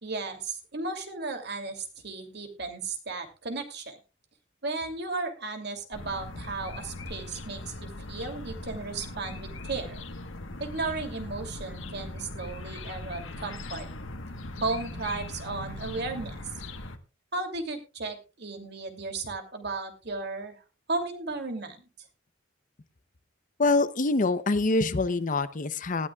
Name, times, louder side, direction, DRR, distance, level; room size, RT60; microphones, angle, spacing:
voice 1, 0.0-4.0 4.6-10.0 10.6-13.9 14.6-16.3 17.3-20.5 20.9-21.8, right 3 dB, 60° right, 5 dB, 2.8 m, -35 dB
sound 1, 5.9-17.0, left 2 dB, 85° left, 1.3 m, -40 dB
voice 2, 23.6-26.1, left 3 dB, 45° left, 13 dB, 0.7 m, -25 dB
19.0 x 12.5 x 2.4 m, 0.30 s
head